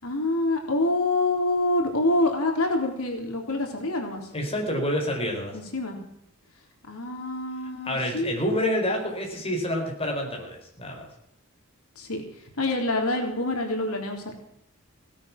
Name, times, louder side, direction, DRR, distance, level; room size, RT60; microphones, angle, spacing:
voice 1, 0.0-4.3 5.5-6.0 6.9-8.4 12.0-14.4, left 2 dB, 80° left, 3 dB, 3.7 m, -26 dB
voice 2, 4.3-5.6 7.8-11.1, left 1 dB, 25° left, 1 dB, 5.0 m, -28 dB
17.5 x 13.0 x 6.0 m, 0.75 s
head